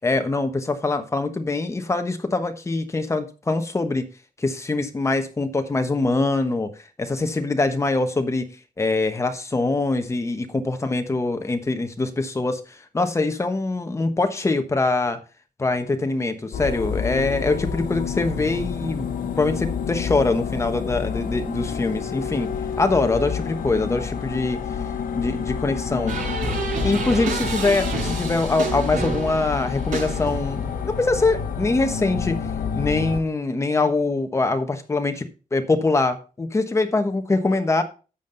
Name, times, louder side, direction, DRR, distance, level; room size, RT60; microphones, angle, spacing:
voice 1, 0.0-4.0 4.4-6.7 7.0-8.4 8.8-15.2 15.6-19.1 19.4-22.5 22.8-24.6 25.1-26.2 26.8-32.4 32.8-37.8, left 3 dB, 20° left, 7 dB, 1.2 m, -23 dB
sound 1, 16.5-33.2, left 7 dB, 75° left, 1.3 m, -29 dB
sound 2, 26.1-30.8, right 4 dB, 65° right, 6.3 m, -29 dB
11.5 x 7.3 x 4.0 m, 0.34 s
wide cardioid pair, 170°, 14 cm